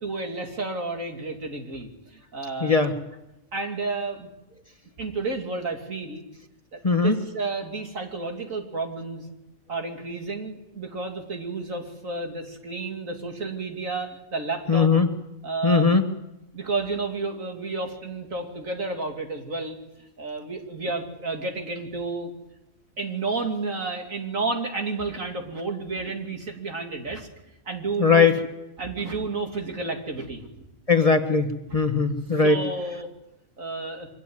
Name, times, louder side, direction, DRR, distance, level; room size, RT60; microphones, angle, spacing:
voice 1, 0.0-2.8 3.5-4.3 5.0-6.2 6.7-9.3 9.7-14.9 15.4-15.9 16.5-19.8 20.2-22.3 23.0-27.3 27.7-28.3 28.8-30.6 32.4-33.1 33.6-34.1, right 3 dB, 70° right, 3 dB, 3.1 m, -31 dB
voice 2, 2.6-3.0 6.8-7.2 14.7-15.1 15.6-16.0 28.0-28.4 30.9-32.6, left 4 dB, 25° left, 6 dB, 1.4 m, -19 dB
24.0 x 16.5 x 9.5 m, 0.94 s
omnidirectional pair, 1.4 m